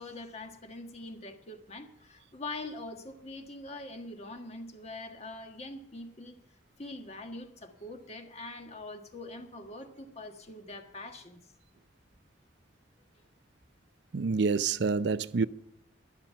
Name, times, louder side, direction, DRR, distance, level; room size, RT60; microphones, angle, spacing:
voice 1, 0.0-6.4 6.8-11.4, left 2 dB, 35° left, 1.5 m, -43 dB
voice 2, 14.1-15.5, right 4 dB, 60° right, 0.5 m, -27 dB
12.0 x 12.0 x 5.6 m
head